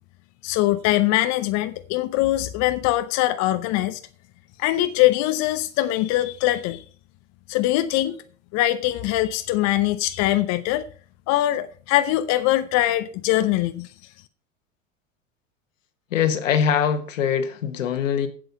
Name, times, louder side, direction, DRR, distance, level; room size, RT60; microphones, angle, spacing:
voice 1, 0.4-4.0 4.6-6.8 7.5-8.2 8.5-10.8 11.3-13.9, left 15 dB, 45° left, 0.7 m, -22 dB
voice 2, 16.1-18.3, left 8 dB, 75° left, 1.3 m, -22 dB
7.8 x 7.8 x 5.8 m
hypercardioid pair, 85°, 39 cm